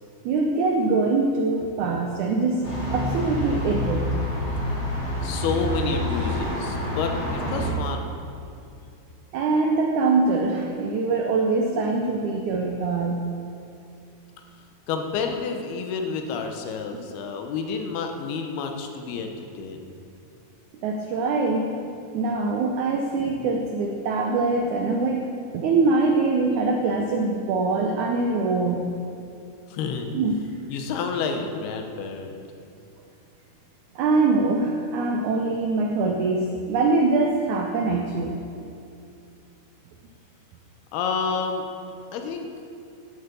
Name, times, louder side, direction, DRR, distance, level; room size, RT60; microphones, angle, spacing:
voice 1, 0.3-2.6 2.9-4.2 9.3-13.3 19.1-19.2 20.8-21.8 22.1-25.3 25.5-28.9 30.1-30.4 34.0-38.4, right 3 dB, 80° right, 2 dB, 1.7 m, -23 dB
sound 1, 2.6-7.7, equal, 35° left, 3.8 m, -27 dB
voice 2, 5.2-8.1 14.9-19.9 29.7-30.1 30.7-32.4 40.9-41.6 42.1-42.5, left 5 dB, 80° left, 4 dB, 2.9 m, -29 dB
10.5 x 8.3 x 6.9 m, 2.5 s
omnidirectional pair, 4.4 m